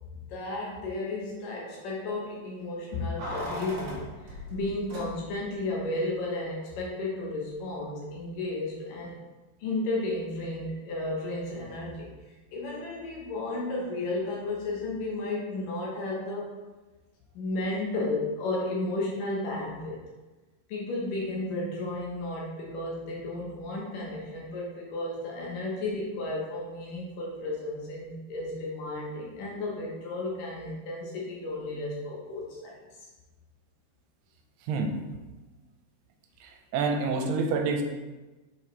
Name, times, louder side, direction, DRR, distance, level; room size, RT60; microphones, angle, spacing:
voice 1, 0.3-9.2 9.6-12.1 12.5-16.6 17.3-20.0 20.7-32.8, left 2 dB, 70° left, -3 dB, 2.4 m, -33 dB
Keys jangling, 3.2-5.5 5.8-5.9, equal, 55° right, 2.3 m, -39 dB
voice 2, 36.4-37.8, right 4 dB, 85° right, 4 dB, 2.7 m, -27 dB
7.0 x 5.2 x 3.2 m, 1.2 s
omnidirectional pair, 4.6 m